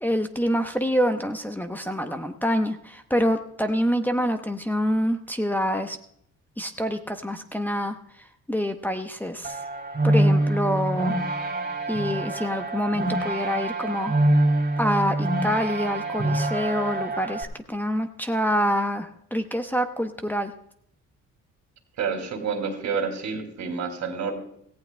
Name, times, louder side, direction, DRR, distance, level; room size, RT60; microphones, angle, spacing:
voice 1, 0.0-6.0 6.6-8.0 8.5-9.6 10.0-11.2 11.9-14.2 14.8-20.5, equal, 5° left, 5 dB, 0.8 m, -26 dB
sound 1, 9.4-17.4, right 1 dB, 30° right, 2.5 m, -25 dB
voice 2, 22.0-24.3, right 5 dB, 70° right, 5 dB, 2.5 m, -29 dB
17.5 x 15.0 x 2.2 m, 0.71 s
cardioid pair, 90°, 30 cm